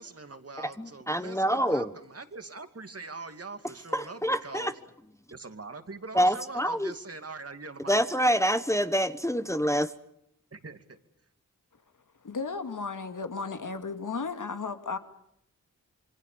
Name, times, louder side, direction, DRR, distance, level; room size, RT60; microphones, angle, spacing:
voice 1, 0.0-4.8 5.3-8.3 10.5-11.0, right 3 dB, 45° right, 8 dB, 2.5 m, -43 dB
voice 2, 0.6-1.9 3.9-4.7 6.1-6.9 7.9-9.9, equal, 10° left, 11 dB, 1.1 m, -26 dB
voice 3, 12.2-15.0, left 4 dB, 65° left, 8 dB, 2.4 m, -34 dB
27.0 x 23.5 x 6.9 m, 0.75 s
cardioid pair, 65°, 33 cm